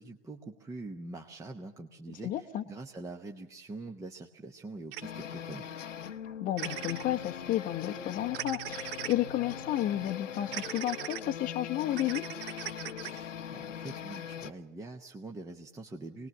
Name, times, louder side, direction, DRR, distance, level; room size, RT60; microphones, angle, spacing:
voice 1, 0.0-5.7 13.1-16.3, right 2 dB, 10° right, 2 dB, 0.9 m, -44 dB
voice 2, 2.2-2.6 6.4-12.3, left 13 dB, 20° left, 7 dB, 0.9 m, -32 dB
sound 1, 4.9-5.0 6.6-7.0 8.3-9.2 10.5-11.2 11.9-13.2, right 12 dB, 45° right, 0.8 m, -39 dB
sound 2, 5.0-14.5, left 8 dB, 80° left, 1.0 m, -41 dB
24.5 x 19.5 x 7.2 m, 0.84 s
hypercardioid pair, 120°, 37 cm